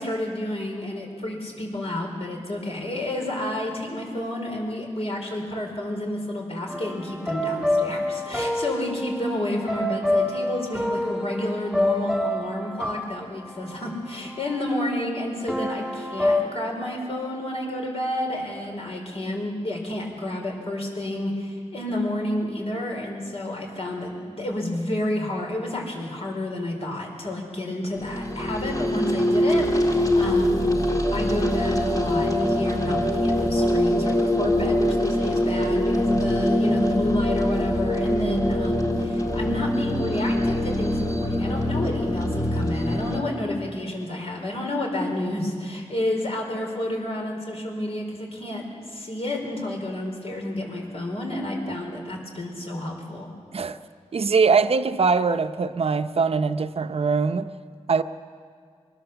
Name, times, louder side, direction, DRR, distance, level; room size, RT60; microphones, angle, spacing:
voice 1, 0.0-30.7 31.1-53.3, left 1 dB, 60° left, 4.4 m, -30 dB
sound 1, 6.7-14.7 15.5-16.4, left 1 dB, ahead, 2.1 m, -27 dB
sound 2, 27.9-43.2, left 1 dB, 30° left, 2.0 m, -23 dB
voice 2, 54.1-57.5 57.9-58.0, right 5 dB, 60° right, 0.8 m, -22 dB
23.0 x 20.5 x 7.0 m
wide cardioid pair, 115°, 11 cm